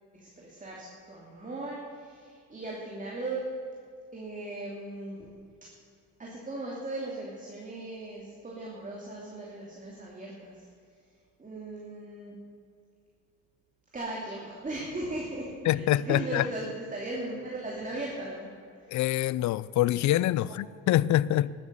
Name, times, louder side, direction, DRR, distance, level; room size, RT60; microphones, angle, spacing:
voice 1, 0.1-3.4 4.1-5.3 6.2-10.7 11.4-12.4 13.9-18.5, right 2 dB, 25° right, 2.8 m, -38 dB
voice 2, 15.7-16.5 18.9-21.5, left 14 dB, 70° left, 0.5 m, -25 dB
12.5 x 9.8 x 6.9 m
cardioid pair, 90°, 30 cm